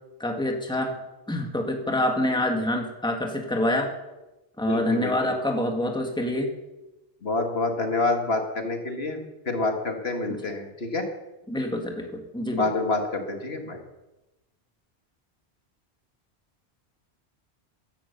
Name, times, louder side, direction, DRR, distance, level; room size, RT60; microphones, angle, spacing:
voice 1, 0.2-1.0 1.3-3.9 4.6-6.5 10.3-10.4 11.5-12.7, left 1 dB, 5° left, 3 dB, 1.8 m, -26 dB
voice 2, 4.7-5.1 7.2-9.2 9.5-11.1 12.5-13.8, left 3 dB, 65° left, 4 dB, 2.2 m, -27 dB
15.0 x 11.5 x 6.9 m, 1.0 s
omnidirectional pair, 1.1 m